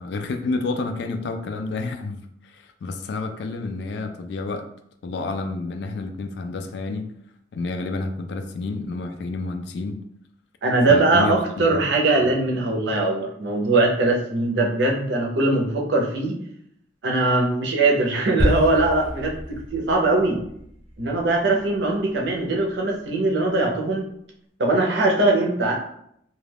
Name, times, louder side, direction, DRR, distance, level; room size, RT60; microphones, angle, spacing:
voice 1, 0.0-2.2 2.5-4.7 5.0-7.1 7.5-10.0 10.9-11.4 11.7-11.8 12.2-12.3, left 3 dB, 65° left, 7 dB, 0.3 m, -29 dB
voice 2, 10.6-16.3 17.0-19.4 19.7-20.4 21.0-24.1 24.6-25.7, right 2 dB, 70° right, -1 dB, 0.6 m, -21 dB
sound 1, 18.4-22.8, equal, 35° right, 0.5 m, -30 dB
2.3 x 2.3 x 3.3 m, 0.72 s
head